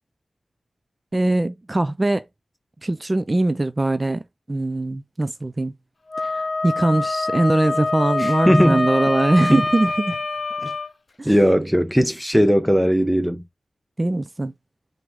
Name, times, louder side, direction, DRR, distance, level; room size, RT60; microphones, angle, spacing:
voice 1, 1.1-2.2 2.8-4.2 4.5-5.7 6.2-10.2 11.2-11.3 14.0-14.5, right 2 dB, 30° right, 0.4 m, -21 dB
Wind instrument woodwind instrument, 6.1-10.9, left 3 dB, 50° left, 0.6 m, -25 dB
voice 2, 8.2-8.8 9.5-9.6 10.6-10.7 11.2-13.4, equal, 5° right, 0.8 m, -18 dB
4.7 x 2.6 x 3.5 m
wide cardioid pair, 70°, 0 cm